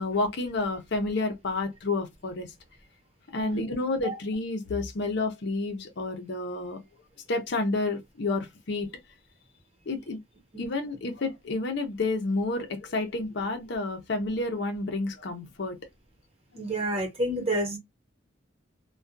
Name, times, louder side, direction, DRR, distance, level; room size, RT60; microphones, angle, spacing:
voice 1, 0.0-2.5 3.3-6.8 7.3-8.9 9.9-10.2 10.6-15.8, left 3 dB, 60° left, 0.6 m, -30 dB
voice 2, 16.5-17.8, right 1 dB, 30° right, 1.1 m, -29 dB
2.3 x 2.2 x 2.5 m
head